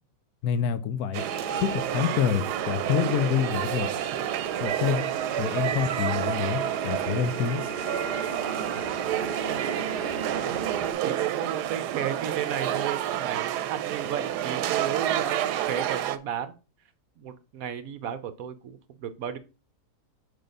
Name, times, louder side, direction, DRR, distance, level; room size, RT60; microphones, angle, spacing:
voice 1, 0.4-1.2 1.6-3.9 4.6-5.1 5.4-7.6, left 9 dB, 75° left, 1.1 m, -27 dB
sound 1, 1.1-16.2, right 11 dB, 85° right, 1.2 m, -29 dB
sound 2, 1.3-10.9, right 5 dB, 30° right, 1.0 m, -36 dB
voice 2, 8.9-9.2 9.5-10.2 10.5-16.5 17.2-19.4, right 9 dB, 65° right, 1.1 m, -34 dB
6.6 x 4.1 x 5.3 m
omnidirectional pair, 1.7 m